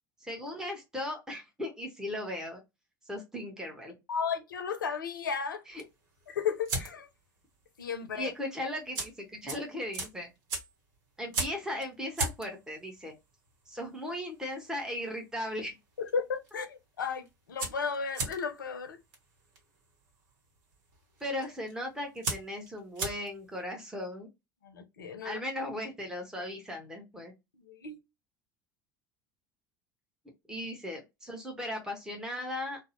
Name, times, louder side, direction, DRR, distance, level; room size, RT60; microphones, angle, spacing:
voice 1, 0.2-2.6 3.1-4.0 8.2-10.3 11.2-13.1 13.7-15.7 21.2-24.3 25.2-27.3 30.5-32.8, left 1 dB, 5° right, 0.9 m, -37 dB
voice 2, 4.1-5.7 6.3-7.1 7.8-8.3 16.0-19.0 24.6-25.4 27.5-28.0, left 6 dB, 80° left, 0.5 m, -34 dB
sound 1, 5.7-7.3 7.5-7.9 8.1-8.2 8.7-15.7 16.0-16.5 16.8-16.9 17.1-23.6, right 3 dB, 60° right, 1.0 m, -37 dB
2.5 x 2.0 x 2.8 m
figure-of-eight pair, 70°, 11 cm